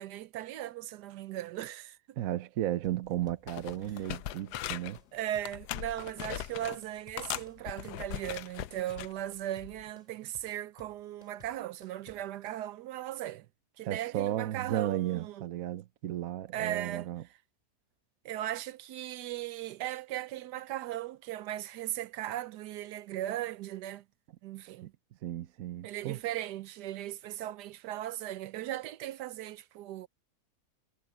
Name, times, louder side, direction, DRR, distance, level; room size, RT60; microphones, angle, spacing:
voice 1, 0.0-2.0 5.1-13.5 13.8-15.5 16.5-17.1 18.2-24.0 24.4-24.9 25.8-30.1, right 13 dB, 85° right, 1.2 m, -38 dB
voice 2, 2.2-5.0 13.8-17.2 24.8-24.9 25.2-26.2, right 13 dB, 65° right, 1.2 m, -34 dB
sound 1, 2.8-12.6, left 1 dB, 20° left, 4.8 m, -57 dB
sound 2, 3.1-3.2 3.5-5.0 5.4-6.8 7.2-9.1 9.6-9.8, left 13 dB, 80° left, 1.2 m, -40 dB
omnidirectional pair, 1.7 m